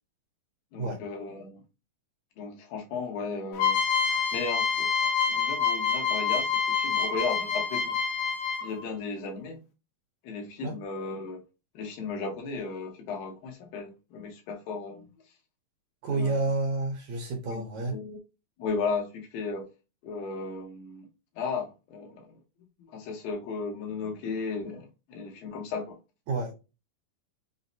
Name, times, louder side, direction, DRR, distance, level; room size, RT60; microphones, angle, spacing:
voice 1, 0.7-1.6 2.4-3.8 4.3-8.0 8.6-9.6 10.2-11.4 11.7-15.1 16.1-16.5 17.4-18.2 18.6-19.7 20.0-21.1 21.4-22.3 22.8-26.0, left 4 dB, 90° left, 2.9 m, -35 dB
sound 1, 3.6-8.8, left 5 dB, 70° left, 2.2 m, -27 dB
voice 2, 16.0-18.0 26.3-26.5, right 3 dB, 70° right, 1.9 m, -29 dB
6.3 x 2.1 x 2.6 m
omnidirectional pair, 4.1 m